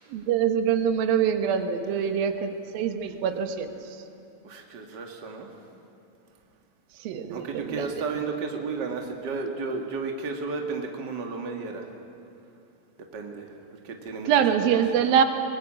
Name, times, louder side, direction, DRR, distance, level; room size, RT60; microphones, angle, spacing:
voice 1, 0.1-3.7 7.0-7.9 14.3-15.2, right 8 dB, 90° right, 7 dB, 3.0 m, -24 dB
voice 2, 4.4-5.5 7.3-11.9 13.1-13.5 13.8-14.3, right 4 dB, 35° right, 3 dB, 2.2 m, -33 dB
24.0 x 20.0 x 8.7 m, 2.6 s
omnidirectional pair, 4.0 m